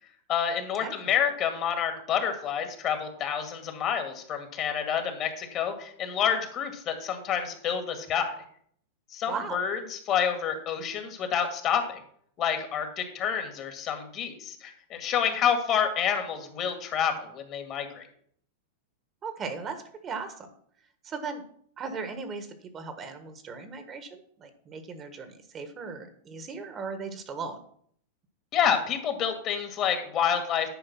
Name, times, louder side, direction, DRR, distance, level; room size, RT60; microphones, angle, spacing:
voice 1, 0.3-8.4 9.1-12.0 12.4-18.1 28.5-30.7, left 8 dB, 40° left, 6 dB, 1.9 m, -28 dB
voice 2, 9.3-9.6 19.2-20.5 21.0-21.4 21.8-22.5 22.7-27.6, right 5 dB, 30° right, 9 dB, 1.4 m, -37 dB
10.5 x 4.9 x 5.9 m, 0.62 s
hypercardioid pair, 105°, 0 cm